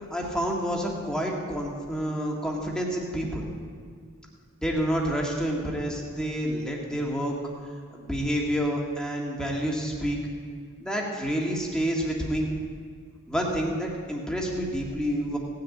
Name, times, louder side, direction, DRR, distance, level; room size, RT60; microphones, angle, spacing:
voice 1, 0.1-3.5 4.6-7.3 7.9-10.2 10.8-12.5 13.3-15.4, equal, 5° left, -2 dB, 1.8 m, -28 dB
17.5 x 6.8 x 8.5 m, 2.1 s
head